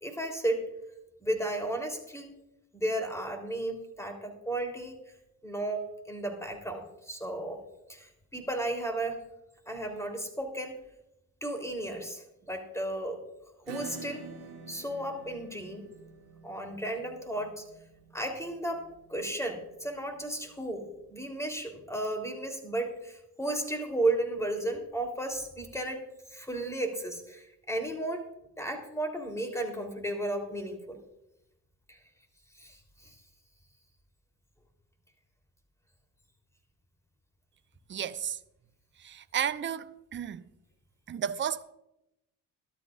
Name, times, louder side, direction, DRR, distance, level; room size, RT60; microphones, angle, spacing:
voice 1, 0.0-0.6 1.2-2.3 2.7-4.9 5.4-7.6 7.9-9.2 9.7-10.7 11.4-13.2 13.7-14.2 14.7-15.9 16.4-17.6 18.1-18.8 19.1-26.0 26.3-28.3 28.6-31.0 31.9-32.0 32.6-33.1, right 1 dB, 5° left, 3.5 m, -34 dB
Acoustic guitar / Strum, 13.7-20.9, right 5 dB, 50° right, 1.7 m, -48 dB
voice 2, 37.9-38.4 39.0-40.4 41.1-41.6, right 9 dB, 25° right, 0.7 m, -33 dB
20.0 x 12.0 x 2.5 m
figure-of-eight pair, 45°, 47 cm